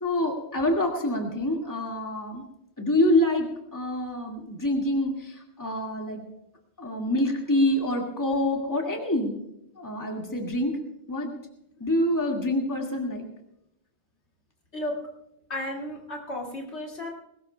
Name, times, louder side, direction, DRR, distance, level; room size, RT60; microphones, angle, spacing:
voice 1, 0.0-2.4 2.8-6.3 6.8-9.4 9.8-10.8 11.1-11.3 11.8-13.3, left 1 dB, 15° left, 0 dB, 2.0 m, -26 dB
voice 2, 15.5-17.1, left 1 dB, 70° left, -2 dB, 2.7 m, -33 dB
21.5 x 19.0 x 2.3 m, 0.83 s
omnidirectional pair, 1.2 m